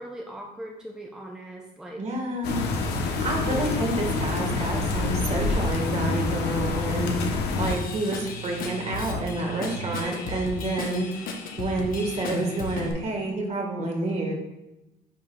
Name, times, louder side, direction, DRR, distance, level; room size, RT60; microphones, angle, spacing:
voice 1, 0.0-2.0 3.5-3.7, right 1 dB, 5° right, -1 dB, 0.6 m, -39 dB
voice 2, 2.0-2.6 3.0-7.3 7.6-11.2 11.6-14.3, right 2 dB, 40° right, 1 dB, 1.5 m, -29 dB
sound 1, 2.4-7.8, left 3 dB, 85° left, 0.9 m, -27 dB
sound 2, 2.9-10.0, right 13 dB, 60° right, 0.4 m, -42 dB
Drum kit / Drum, 7.6-12.9, left 3 dB, 60° left, 1.0 m, -35 dB
8.5 x 4.8 x 2.3 m, 0.96 s
cardioid pair, 110°, 17 cm